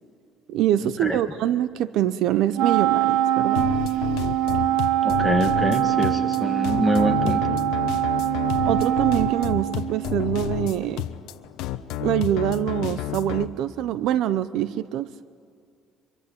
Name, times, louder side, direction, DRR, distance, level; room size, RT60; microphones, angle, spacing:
voice 1, 0.5-3.7 8.6-11.0 12.0-15.1, right 12 dB, 65° right, 15 dB, 0.7 m, -24 dB
Wind instrument woodwind instrument, 2.6-10.2, right 12 dB, 85° right, 1.0 m, -23 dB
sound 1, 3.6-13.4, left 12 dB, 90° left, 1.0 m, -30 dB
voice 2, 5.0-7.6, equal, ahead, 5 dB, 1.8 m, -25 dB
24.5 x 23.5 x 8.7 m, 2.4 s
cardioid pair, 165°, 0 cm